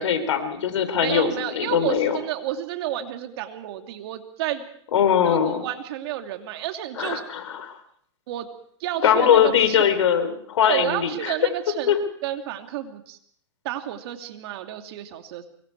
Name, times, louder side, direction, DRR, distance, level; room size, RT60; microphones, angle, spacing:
voice 1, 0.0-2.2 4.9-5.6 7.0-7.7 9.0-11.3 11.9-12.0, left 8 dB, 80° left, 9 dB, 3.9 m, -21 dB
voice 2, 1.0-4.7 5.2-7.2 8.3-8.5 8.8-9.9 10.6-11.9 12.2-13.2 13.6-15.5, right 12 dB, 55° right, 6 dB, 2.7 m, -31 dB
25.0 x 23.0 x 4.7 m, 0.62 s
hypercardioid pair, 135°, 15 cm